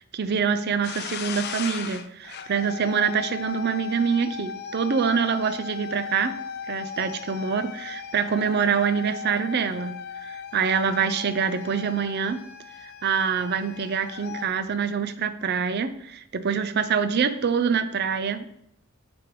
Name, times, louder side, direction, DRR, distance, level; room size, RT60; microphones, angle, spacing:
voice 1, 0.1-6.3 6.7-12.4 12.8-18.5, right 6 dB, 50° right, 10 dB, 0.5 m, -25 dB
sound 1, 0.8-14.5, left 7 dB, 50° left, 0.4 m, -37 dB
9.3 x 3.5 x 3.0 m, 0.76 s
head